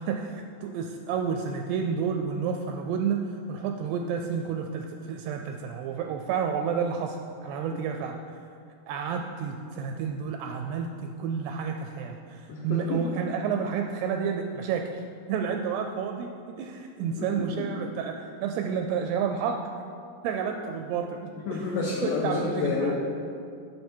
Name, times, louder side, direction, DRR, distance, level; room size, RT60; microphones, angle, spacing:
voice 1, 0.0-7.2 7.4-8.4 8.9-15.0 15.3-19.6 20.2-21.6 22.0-22.9, right 6 dB, 85° right, 4 dB, 2.4 m, -30 dB
voice 2, 12.5-13.0 17.0-17.3 17.6-17.7 21.5-22.9, left 4 dB, 75° left, -3 dB, 2.1 m, -29 dB
13.0 x 5.8 x 4.4 m, 2.4 s
omnidirectional pair, 5.0 m